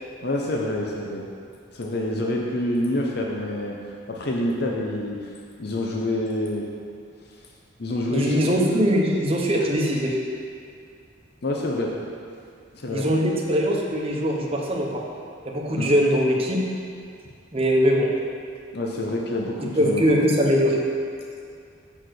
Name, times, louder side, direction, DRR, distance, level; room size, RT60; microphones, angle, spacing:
voice 1, 0.2-1.3 1.7-5.3 5.6-6.7 7.8-8.8 11.4-12.0 12.7-13.1 15.8-15.9 18.7-20.2, left 1 dB, 60° left, -1 dB, 0.8 m, -27 dB
voice 2, 8.1-10.2 12.8-15.0 15.4-16.6 17.5-18.1 19.7-20.8, equal, 30° right, -2 dB, 1.0 m, -21 dB
7.6 x 4.6 x 6.4 m, 2.4 s
head